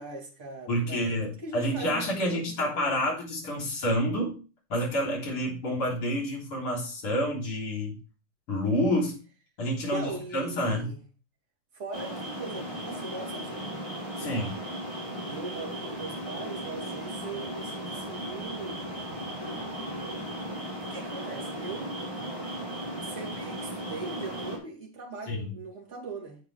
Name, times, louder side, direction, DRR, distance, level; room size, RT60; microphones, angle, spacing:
voice 1, 0.0-3.0 9.8-11.0 11.7-13.8 15.2-18.9 19.7-20.4 20.8-22.0 23.0-26.4, right 3 dB, 20° right, 3.1 m, -40 dB
voice 2, 0.7-4.3 4.7-8.0 8.5-9.2 9.6-10.9 14.2-14.6 25.3-25.5, equal, 40° left, 4.4 m, -28 dB
sound 1, 11.9-24.6, equal, 10° left, 3.7 m, -36 dB
11.0 x 8.2 x 3.4 m
omnidirectional pair, 3.8 m